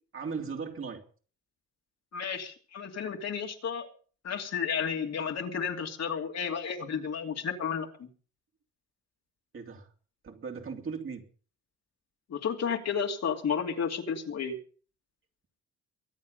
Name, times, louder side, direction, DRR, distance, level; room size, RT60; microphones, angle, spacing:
voice 1, 0.1-1.0 9.5-9.9 10.2-11.2, right 5 dB, 45° right, 3 dB, 3.0 m, -37 dB
voice 2, 2.1-3.9 4.2-8.1 12.3-14.6, left 6 dB, 60° left, 2 dB, 3.0 m, -32 dB
23.5 x 8.7 x 5.3 m, 0.41 s
cardioid pair, 90°, 30 cm